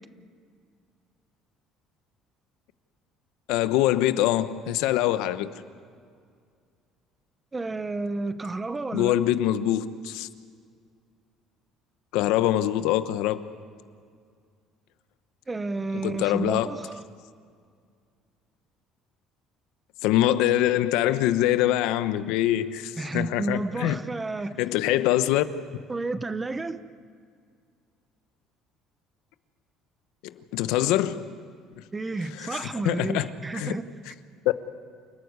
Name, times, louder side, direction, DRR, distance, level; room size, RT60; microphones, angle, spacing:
voice 1, 3.5-5.5 8.9-10.3 12.1-13.5 16.0-16.7 20.0-24.0 24.6-25.4 30.2-31.3 31.8-31.9 32.4-32.6 32.8-33.8, left 13 dB, 85° left, 12 dB, 1.0 m, -24 dB
voice 2, 7.5-9.2 15.5-17.1 23.0-24.6 25.9-26.8 31.9-33.9, right 3 dB, 15° right, 13 dB, 0.7 m, -31 dB
28.5 x 14.5 x 9.5 m, 2.2 s
cardioid pair, 175°, 0 cm